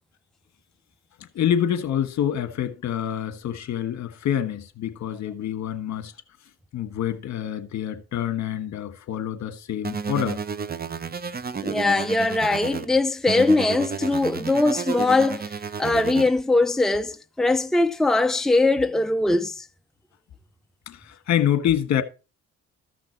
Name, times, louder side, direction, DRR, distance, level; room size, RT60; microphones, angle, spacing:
voice 1, 1.2-6.1 6.7-10.4 20.9-22.0, left 10 dB, 65° left, 1.5 m, -26 dB
sound 1, 9.8-12.9 13.3-16.3, right 6 dB, 30° right, 1.0 m, -31 dB
voice 2, 11.6-15.5 15.8-19.6, left 2 dB, ahead, 0.7 m, -21 dB
14.0 x 5.9 x 4.5 m
cardioid pair, 90°, 30 cm